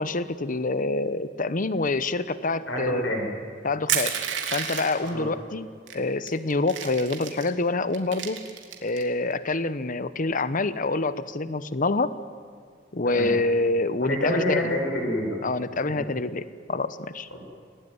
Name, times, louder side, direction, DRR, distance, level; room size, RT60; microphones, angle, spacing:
voice 1, 0.0-3.0 3.6-4.1 4.5-5.7 5.9-8.4 8.8-12.1 12.9-14.7 15.4-17.3, left 3 dB, 45° left, 14 dB, 1.0 m, -26 dB
voice 2, 2.7-3.3 5.0-5.3 13.0-13.3 14.0-15.4 15.9-16.0 17.3-17.4, left 1 dB, 70° left, 1 dB, 6.6 m, -27 dB
Crushing, 3.9-5.1 5.9-6.0 6.3-7.5 7.9-9.0, right 8 dB, 85° right, 3.1 m, -29 dB
27.5 x 18.0 x 9.6 m, 2.1 s
head